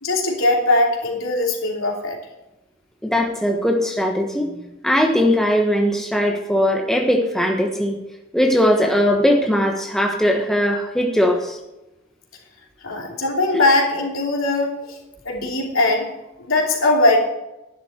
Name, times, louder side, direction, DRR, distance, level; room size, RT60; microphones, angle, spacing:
voice 1, 0.0-2.2 12.8-15.0 15.2-16.1 16.4-17.2, left 2 dB, 90° left, 0 dB, 3.0 m, -20 dB
voice 2, 3.0-4.5 4.8-8.0 8.3-11.6, equal, ahead, 1 dB, 1.2 m, -19 dB
11.0 x 11.0 x 4.4 m, 0.95 s
head